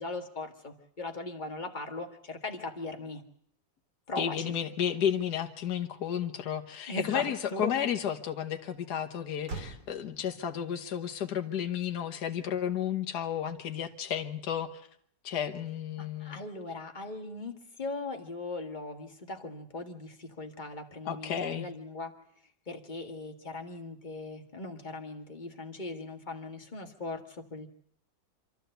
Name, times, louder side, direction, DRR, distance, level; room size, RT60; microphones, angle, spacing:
voice 1, 0.0-3.2 4.1-4.6 6.9-7.7 16.0-22.2 22.7-27.7, left 2 dB, 25° left, 4 dB, 1.9 m, -39 dB
voice 2, 4.2-14.8 15.2-16.4 21.1-21.7, left 9 dB, 65° left, 5 dB, 1.8 m, -32 dB
Motor vehicle (road), 9.4-14.0, right 3 dB, 80° right, 4.0 m, -50 dB
26.5 x 13.0 x 8.0 m, 0.64 s
omnidirectional pair, 1.9 m